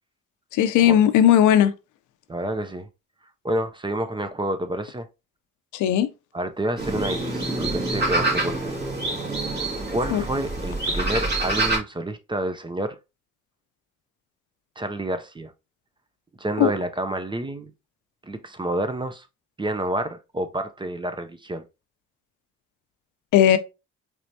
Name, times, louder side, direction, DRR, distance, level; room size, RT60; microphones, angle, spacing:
voice 1, 0.5-1.7 5.7-6.1 10.1-10.2 16.6-16.7 23.3-23.6, left 10 dB, 85° left, 0.6 m, -17 dB
voice 2, 2.3-2.9 3.4-5.1 6.3-8.7 9.9-13.0 14.8-15.5 16.4-17.7 18.2-19.3 19.6-21.6, right 1 dB, 15° right, 0.5 m, -29 dB
sound 1, 6.8-11.8, right 2 dB, 35° right, 2.1 m, -26 dB
4.5 x 3.3 x 2.7 m
cardioid pair, 90°, 30 cm